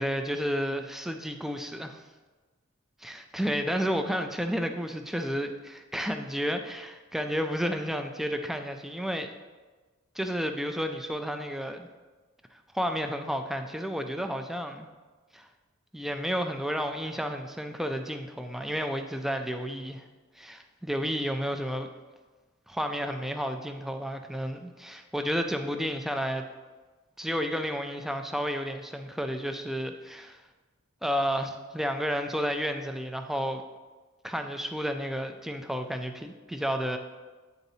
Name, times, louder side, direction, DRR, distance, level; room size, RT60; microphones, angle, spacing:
voice 1, 0.0-2.0 3.0-9.3 10.2-11.9 12.5-14.9 15.3-15.5 15.9-20.0 20.4-21.9 22.7-26.5 27.2-30.4 31.0-33.6 34.2-37.0, equal, ahead, 6 dB, 0.3 m, -31 dB
9.2 x 4.0 x 2.7 m, 1.3 s
head